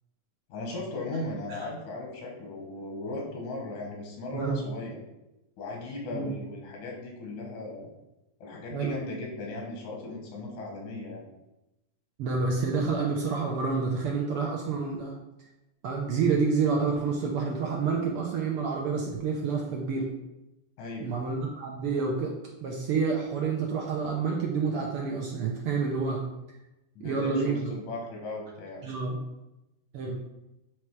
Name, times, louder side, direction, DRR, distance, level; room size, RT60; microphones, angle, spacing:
voice 1, 0.5-5.0 5.6-7.9 8.4-11.2 20.8-21.1 27.0-28.8, left 2 dB, 85° left, -1 dB, 2.8 m, -37 dB
voice 2, 4.3-4.7 6.1-6.3 8.7-8.9 12.2-15.1 15.8-20.1 21.0-22.3 22.6-26.2 27.0-27.7 28.8-29.2 29.9-30.2, right 5 dB, 75° right, -1 dB, 1.3 m, -28 dB
8.4 x 3.1 x 4.6 m, 0.93 s
omnidirectional pair, 3.3 m